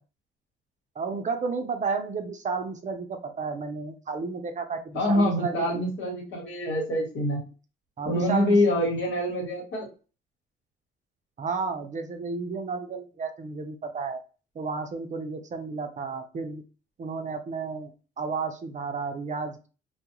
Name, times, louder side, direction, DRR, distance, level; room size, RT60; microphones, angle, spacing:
voice 1, 1.0-5.9 8.0-8.6 11.4-14.2 14.6-16.6 17.0-19.7, right 4 dB, 40° right, 6 dB, 0.5 m, -32 dB
voice 2, 4.9-7.4 8.0-9.9, left 1 dB, 75° left, -1 dB, 1.2 m, -25 dB
2.3 x 2.0 x 2.9 m, 0.34 s
cardioid pair, 90°, 20 cm